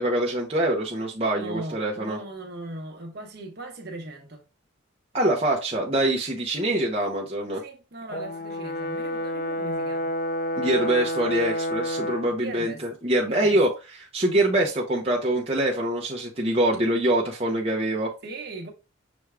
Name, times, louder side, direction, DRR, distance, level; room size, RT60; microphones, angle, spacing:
voice 1, 0.0-2.2 5.1-7.6 10.6-13.7 14.1-18.1, right 1 dB, 30° right, 0.7 m, -24 dB
voice 2, 1.3-4.4 7.6-10.1 12.4-12.8 13.2-13.6 18.2-18.7, right 2 dB, 55° right, 1.0 m, -38 dB
Brass instrument, 8.1-12.3, equal, 45° left, 0.3 m, -29 dB
6.0 x 2.4 x 3.3 m
head